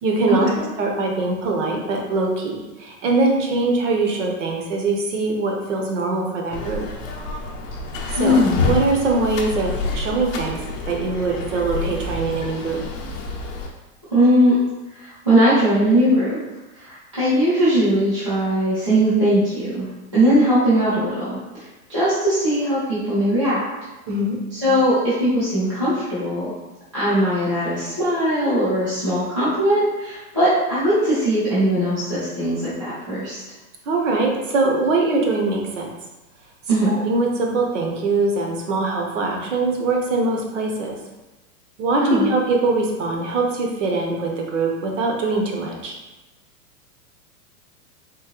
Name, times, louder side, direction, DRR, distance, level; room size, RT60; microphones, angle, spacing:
voice 1, 0.0-6.8 8.1-10.6 10.8-12.8 24.1-24.4 33.9-35.9 36.9-40.9 41.8-45.9, right 3 dB, 50° right, 1 dB, 0.7 m, -22 dB
sound 1, 6.5-13.7, left 3 dB, 55° left, 0.6 m, -28 dB
voice 2, 8.1-8.7 14.1-14.6 14.9-16.4 16.7-21.6 21.9-23.6 24.5-26.5 26.9-33.4 36.7-36.9 42.0-42.3, equal, 25° right, -14 dB, 0.3 m, -19 dB
3.7 x 2.6 x 2.9 m, 1.1 s
supercardioid pair, 175°, 47 cm